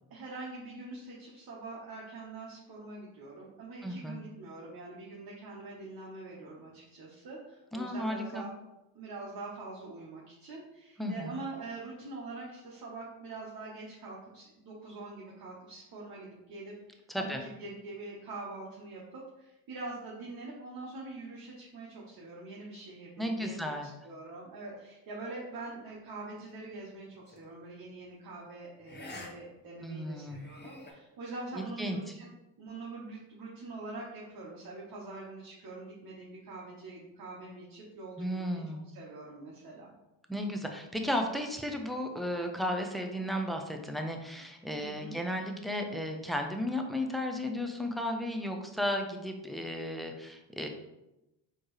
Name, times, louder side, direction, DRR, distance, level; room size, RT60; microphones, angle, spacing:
voice 1, 0.1-8.5 8.9-32.3 32.6-38.6 38.9-39.9 44.8-45.2, right 3 dB, 45° right, -4 dB, 1.2 m, -44 dB
voice 2, 3.8-4.2 7.7-8.4 11.0-11.4 17.1-17.4 23.2-23.9 29.8-30.5 31.5-32.0 38.2-38.9 40.3-50.7, left 1 dB, ahead, 3 dB, 0.5 m, -34 dB
sound 1, 27.3-27.5 28.8-29.3 29.6-29.7 30.2-30.9, left 2 dB, 20° left, 0.8 m, -46 dB
4.3 x 3.1 x 3.1 m, 0.94 s
supercardioid pair, 75°, 48 cm